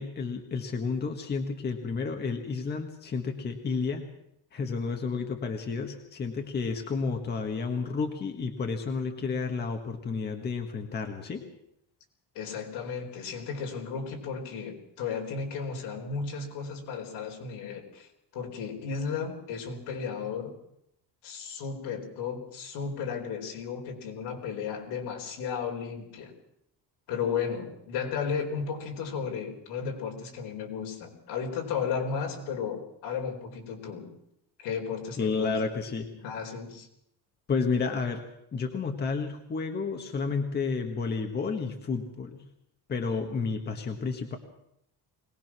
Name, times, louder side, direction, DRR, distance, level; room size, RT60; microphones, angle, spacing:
voice 1, 0.0-4.0 4.5-11.4 35.2-36.1 37.5-38.2 38.5-42.4 42.9-44.4, left 4 dB, 25° left, 4 dB, 1.6 m, -31 dB
voice 2, 12.3-18.1 18.3-20.5 21.2-26.3 27.1-34.1 34.6-35.5 36.1-36.9, left 6 dB, 80° left, 2 dB, 4.5 m, -34 dB
22.0 x 19.0 x 6.1 m, 0.78 s
cardioid pair, 180°, 39 cm